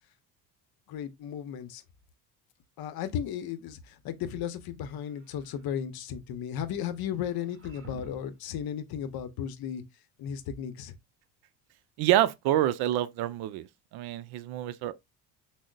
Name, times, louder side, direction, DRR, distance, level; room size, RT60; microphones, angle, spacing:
voice 1, 0.9-1.8 2.8-9.8 10.2-10.9, left 9 dB, 55° left, 0.7 m, -35 dB
sound 1, 4.9-5.8 7.2-8.5, right 2 dB, 30° right, 1.0 m, -50 dB
voice 2, 12.0-13.7 13.9-14.9, right 13 dB, 60° right, 0.5 m, -27 dB
6.1 x 2.1 x 2.3 m
supercardioid pair, 80°, 44 cm